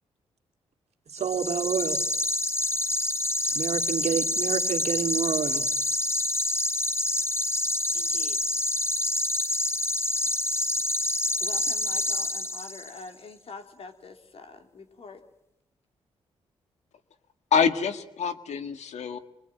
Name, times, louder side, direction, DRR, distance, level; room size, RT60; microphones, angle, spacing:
sound 1, 1.1-13.0, left 1 dB, 20° left, 1.5 m, -27 dB
voice 1, 1.1-2.0 3.5-5.7, right 7 dB, 65° right, 2.4 m, -28 dB
voice 2, 7.9-8.4 11.4-15.2, left 4 dB, 60° left, 3.6 m, -45 dB
voice 3, 17.5-19.2, left 6 dB, 75° left, 1.8 m, -26 dB
27.5 x 23.0 x 9.3 m
cardioid pair, 65°, 12 cm